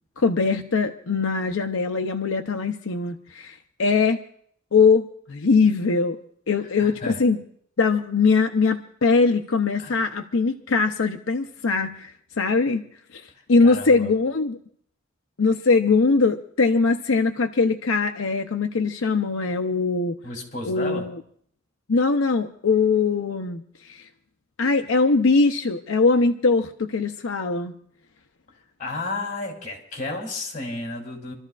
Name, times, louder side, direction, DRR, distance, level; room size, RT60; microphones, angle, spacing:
voice 1, 0.2-4.2 4.7-6.2 6.5-7.4 7.8-12.1 12.4-12.8 13.1-13.2 13.5-14.6 15.4-20.1 20.7-21.2 21.9-24.0 24.6-27.7, left 4 dB, 85° left, 6 dB, 0.7 m, -21 dB
voice 2, 6.8-7.2 9.8-10.1 13.6-14.1 20.2-21.1 28.8-31.3, left 2 dB, 40° left, 0 dB, 3.4 m, -32 dB
28.5 x 13.5 x 2.5 m, 0.63 s
head